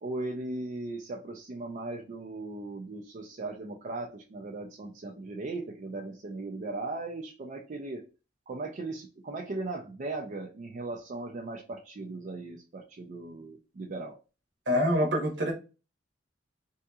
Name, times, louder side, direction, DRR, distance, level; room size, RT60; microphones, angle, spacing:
voice 1, 0.0-8.0 8.5-14.2, right 2 dB, 45° right, 1 dB, 0.4 m, -38 dB
voice 2, 14.7-15.5, equal, 65° right, 1 dB, 1.1 m, -25 dB
3.6 x 2.7 x 2.3 m, 0.32 s
head